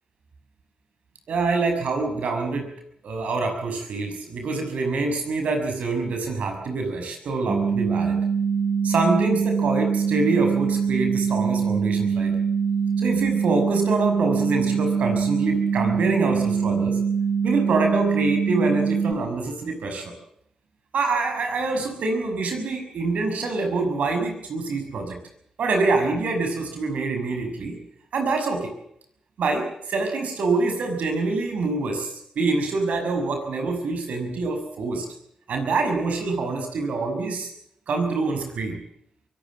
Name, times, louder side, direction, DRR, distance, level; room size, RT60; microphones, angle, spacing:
voice 1, 1.3-2.7 3.0-8.2 8.8-12.3 13.0-17.0 17.4-20.1 20.9-25.2 25.6-27.8 28.1-28.7 29.4-35.1 35.5-37.5 37.9-38.8, right 3 dB, 75° right, 5 dB, 6.3 m, -25 dB
sound 1, 7.5-19.1, right 6 dB, 35° right, 2.7 m, -23 dB
23.5 x 17.5 x 7.6 m, 0.72 s
supercardioid pair, 50°, 2 cm